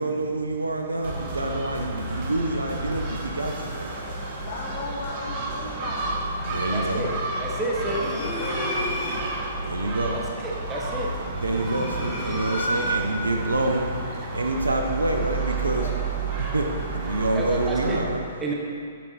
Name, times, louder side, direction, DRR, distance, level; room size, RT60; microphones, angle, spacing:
voice 1, 0.0-3.9 6.5-7.1 9.7-10.1 11.0-11.1 11.4-13.9 14.3-15.9 16.5-16.7 16.9-18.2, right 2 dB, 90° right, 2 dB, 0.6 m, -27 dB
sound 1, 0.9-7.0, right 1 dB, 55° right, 1.6 m, -43 dB
Gull seagull, 1.0-18.0, right 2 dB, 40° right, 1.0 m, -31 dB
voice 2, 4.3-6.2 7.7-9.4 15.1-16.1 17.0-17.3, left 3 dB, 50° left, -3 dB, 0.8 m, -37 dB
voice 3, 6.7-7.1 7.4-8.0 10.4-11.1 17.3-18.0 18.4-18.5, right 2 dB, 15° right, -3 dB, 0.8 m, -30 dB
sound 2, 7.8-9.4 11.3-13.3, right 1 dB, 5° left, 1.6 m, -31 dB
7.3 x 4.5 x 4.1 m, 2.3 s
figure-of-eight pair, 120°, 0 cm